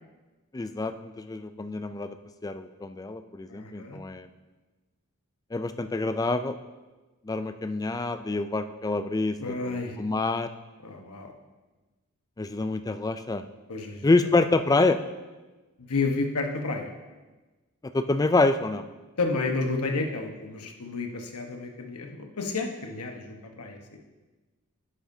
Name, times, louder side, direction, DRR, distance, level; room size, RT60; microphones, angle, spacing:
voice 1, 0.5-2.2 2.4-4.3 5.5-6.6 7.2-10.5 12.4-13.4 14.0-15.0 17.8-18.8, left 3 dB, 15° left, 10 dB, 0.3 m, -26 dB
voice 2, 3.5-4.0 9.4-10.0 10.8-11.3 13.7-14.1 15.8-16.9 19.2-24.0, left 3 dB, 85° left, 3 dB, 1.1 m, -31 dB
10.5 x 9.9 x 2.7 m, 1.2 s
head